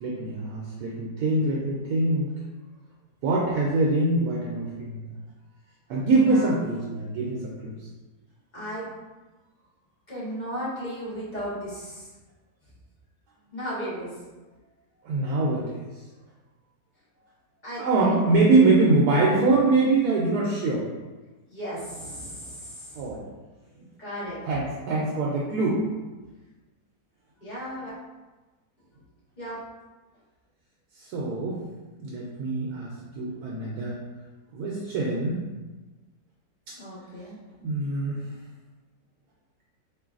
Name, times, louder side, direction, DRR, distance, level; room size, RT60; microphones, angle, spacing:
voice 1, 0.0-2.3 3.2-5.0 5.9-7.9 8.6-8.7 15.0-15.8 17.8-20.9 23.0-23.2 24.5-25.8 31.0-31.6 32.0-32.9 33.1-34.0 34.5-35.4 37.6-38.2, right 2 dB, 80° right, -3 dB, 1.1 m, -24 dB
voice 2, 8.5-8.9 10.1-12.1 13.5-14.1 17.6-18.5 21.5-23.0 24.0-24.4 27.4-27.9 29.4-29.6 36.8-37.4, equal, 30° left, -10 dB, 1.3 m, -35 dB
3.8 x 3.0 x 2.4 m, 1.2 s
omnidirectional pair, 1.7 m